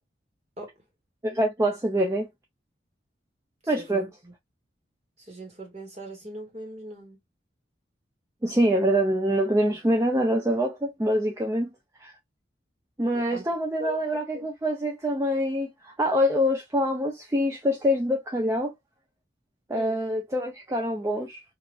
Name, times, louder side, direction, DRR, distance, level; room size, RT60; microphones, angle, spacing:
voice 1, 1.2-2.3 3.7-4.1 8.4-11.7 12.0-12.1 13.0-18.7 19.7-21.4, equal, 15° right, 0.4 m, -25 dB
voice 2, 3.8-4.3 5.2-7.2 13.1-13.4 13.8-14.0 14.3-14.5 19.7-20.0, equal, 35° right, 1.2 m, -40 dB
3.3 x 2.4 x 2.3 m
head